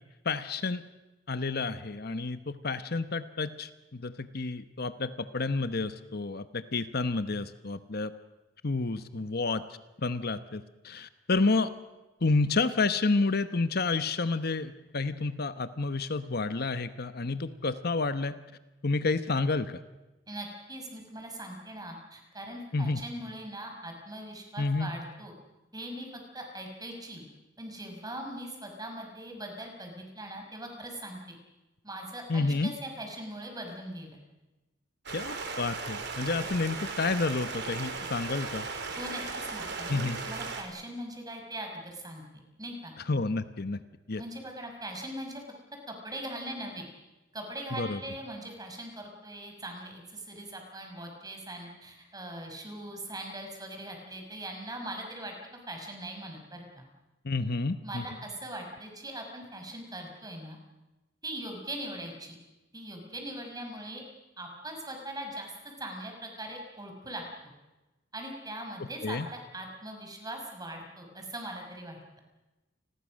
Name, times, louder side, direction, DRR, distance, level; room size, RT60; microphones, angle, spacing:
voice 1, 0.2-0.8 1.3-8.1 8.6-9.6 10.0-11.7 12.2-18.3 18.8-19.8 22.7-23.0 24.6-24.9 32.3-32.7 35.1-38.7 39.9-40.2 43.1-43.8 44.1-44.2 47.7-48.0 57.2-58.0 68.8-69.3, left 3 dB, 55° left, 11 dB, 1.0 m, -30 dB
voice 2, 20.3-25.3 25.7-27.2 27.6-31.4 31.8-34.2 38.9-42.9 44.2-45.4 45.9-46.9 47.3-55.3 55.7-56.9 57.8-60.6 61.2-62.4 62.7-64.0 64.4-67.2 68.1-72.0, right 1 dB, 20° right, 3 dB, 6.0 m, -41 dB
Stream, 35.1-40.6, right 4 dB, 65° right, 4.2 m, -37 dB
29.5 x 21.5 x 6.4 m, 1.1 s
head